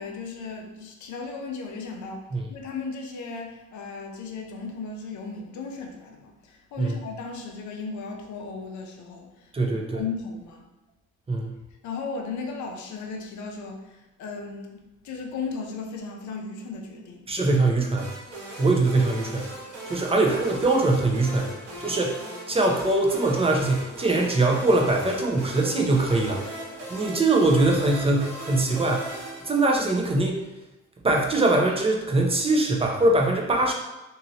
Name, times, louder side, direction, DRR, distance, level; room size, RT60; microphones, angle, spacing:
voice 1, 0.0-10.7 11.8-17.3, left 4 dB, 75° left, 2 dB, 0.6 m, -36 dB
voice 2, 9.5-10.0 11.3-11.6 17.3-18.1 18.6-19.5 19.9-21.5 21.8-22.2 22.5-26.4 26.9-30.4 31.0-33.7, right 2 dB, 20° right, 0 dB, 0.5 m, -22 dB
sound 1, 18.0-30.2, right 1 dB, 85° right, 1.2 m, -39 dB
2.9 x 2.7 x 2.7 m, 1.0 s
cardioid pair, 90°, 30 cm